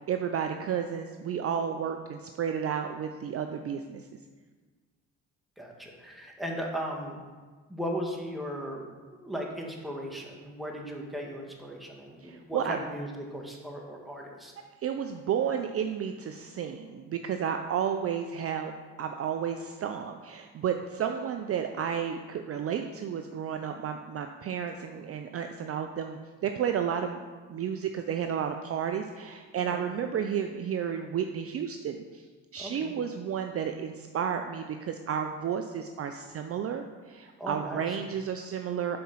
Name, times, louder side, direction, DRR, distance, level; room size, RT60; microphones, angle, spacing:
voice 1, 0.1-4.2 12.2-12.8 14.8-18.7 19.0-27.2 27.5-32.2 32.5-39.0, right 8 dB, 45° right, 6 dB, 0.5 m, -32 dB
voice 2, 5.6-7.2 7.7-8.8 9.2-14.5 29.7-29.8 32.6-32.9 37.4-37.8, equal, ahead, -1 dB, 1.5 m, -37 dB
5.7 x 4.3 x 5.6 m, 1.4 s
supercardioid pair, 65°, 34 cm